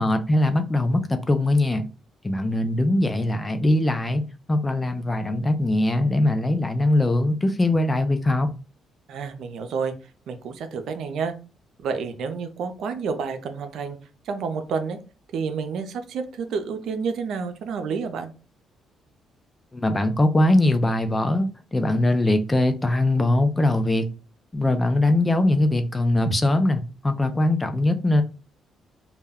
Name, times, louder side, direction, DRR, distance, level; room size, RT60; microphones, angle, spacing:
voice 1, 0.0-1.9 2.2-4.2 4.5-8.5 19.7-24.1 24.5-28.2, left 1 dB, 20° left, 8 dB, 0.4 m, -21 dB
voice 2, 9.1-9.9 10.3-11.3 11.8-14.0 14.2-15.0 15.3-18.3, right 5 dB, 75° right, 7 dB, 0.4 m, -29 dB
2.2 x 2.1 x 3.4 m, 0.34 s
cardioid pair, 90°, 0 cm